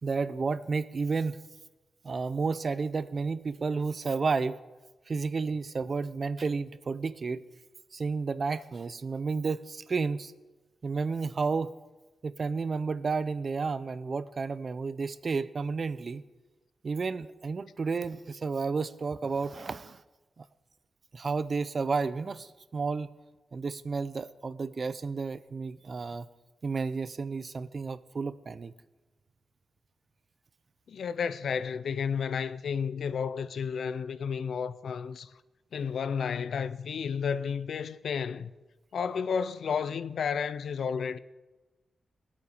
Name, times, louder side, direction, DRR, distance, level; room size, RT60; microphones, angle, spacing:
voice 1, 0.0-1.4 2.0-4.6 5.1-7.4 7.9-10.3 10.8-11.7 12.2-16.2 16.8-20.0 20.4-20.5 21.1-23.1 23.5-26.3 26.6-28.7, right 4 dB, 45° right, 0.5 m, -31 dB
voice 2, 30.9-35.3 35.7-38.5 38.9-41.2, left 6 dB, 75° left, 0.5 m, -32 dB
20.0 x 8.5 x 4.9 m
wide cardioid pair, 120°, 0 cm